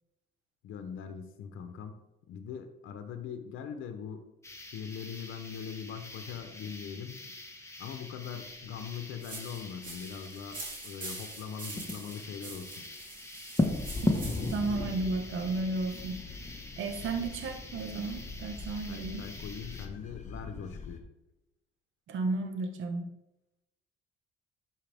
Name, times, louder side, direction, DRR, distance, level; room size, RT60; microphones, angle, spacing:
voice 1, 0.6-2.0 2.3-4.3 4.7-7.2 7.8-12.8 18.9-21.0, left 7 dB, 85° left, 7 dB, 0.8 m, -41 dB
sound 1, 4.4-19.9, left 2 dB, 15° left, 1.2 m, -39 dB
sound 2, 9.2-14.7, right 3 dB, 45° right, 3.2 m, -45 dB
sound 3, 13.6-21.0, left 3 dB, 35° left, 1.4 m, -41 dB
voice 2, 14.5-16.2 16.8-19.2 22.1-23.1, right 3 dB, 80° right, 5 dB, 1.3 m, -33 dB
11.5 x 4.6 x 3.5 m, 0.92 s
cardioid pair, 90°, 20 cm